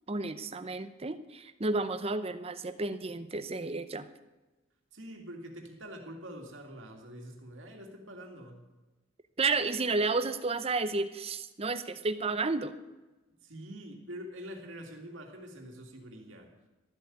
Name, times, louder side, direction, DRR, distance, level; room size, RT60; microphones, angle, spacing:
voice 1, 0.1-4.1 9.4-12.7, right 3 dB, 30° right, 12 dB, 0.7 m, -31 dB
voice 2, 4.9-8.7 13.4-16.5, equal, 60° right, 2 dB, 2.2 m, -45 dB
13.0 x 7.8 x 8.5 m, 1.1 s
head